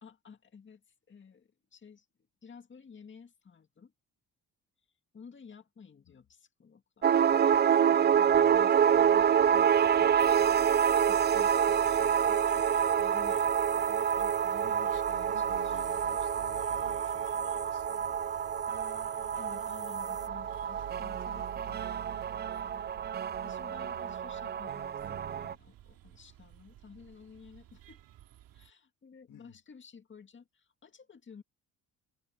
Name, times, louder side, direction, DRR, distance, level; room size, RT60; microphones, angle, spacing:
voice 1, 0.0-2.1 2.4-3.9 5.1-10.7 11.1-15.8 19.3-22.9 23.4-28.0 28.5-31.4, left 6 dB, 35° left, 2.2 m, -54 dB
sound 1, 7.0-25.5, right 8 dB, 30° right, 0.4 m, -27 dB
voice 2, 8.3-8.6 14.6-18.2 29.3-29.6, left 11 dB, 65° left, 2.2 m, -53 dB
sound 2, 8.7-28.7, right 12 dB, 80° right, 2.6 m, -51 dB
sound 3, 10.2-20.3, right 2 dB, 10° right, 0.8 m, -47 dB
cardioid pair, 100°, 34 cm